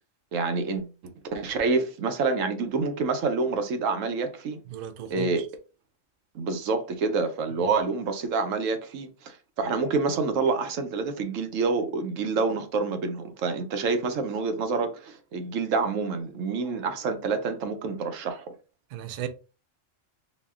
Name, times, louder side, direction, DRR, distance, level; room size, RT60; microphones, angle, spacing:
voice 1, 0.3-4.6 5.1-5.4 6.3-18.5, right 4 dB, 80° right, 1.1 m, -27 dB
voice 2, 4.7-5.3 18.9-19.3, right 10 dB, 60° right, 0.6 m, -34 dB
4.1 x 2.2 x 3.5 m
omnidirectional pair, 1.3 m